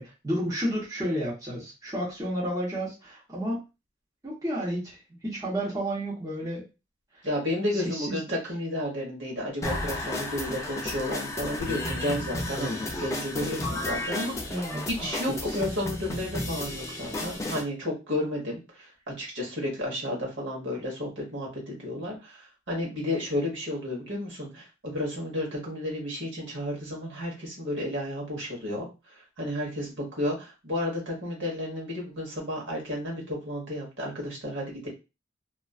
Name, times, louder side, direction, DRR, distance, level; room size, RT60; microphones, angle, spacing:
voice 1, 0.0-3.6 4.2-6.6 7.7-8.2 14.5-14.8 15.2-15.6, equal, 20° right, -6 dB, 0.9 m, -31 dB
voice 2, 7.2-18.9 19.2-34.9, left 1 dB, 65° right, -2 dB, 1.0 m, -32 dB
sound 1, 9.6-17.6, left 1 dB, 15° left, 0.3 m, -33 dB
2.4 x 2.3 x 2.3 m, 0.28 s
head